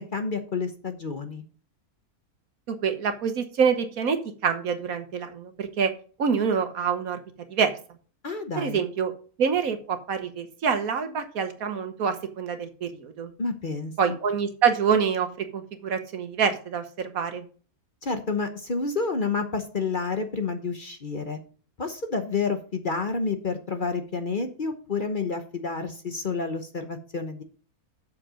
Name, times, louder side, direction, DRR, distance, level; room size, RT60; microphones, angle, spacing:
voice 1, 0.0-1.4 8.2-8.8 13.4-13.9 18.0-21.4 21.8-27.4, left 4 dB, 40° left, 7 dB, 1.0 m, -29 dB
voice 2, 2.7-5.9 6.2-7.2 7.5-7.7 8.6-9.1 9.4-13.3 14.0-17.4, right 6 dB, 70° right, 8 dB, 1.5 m, -26 dB
7.7 x 6.8 x 5.0 m, 0.40 s
omnidirectional pair, 1.6 m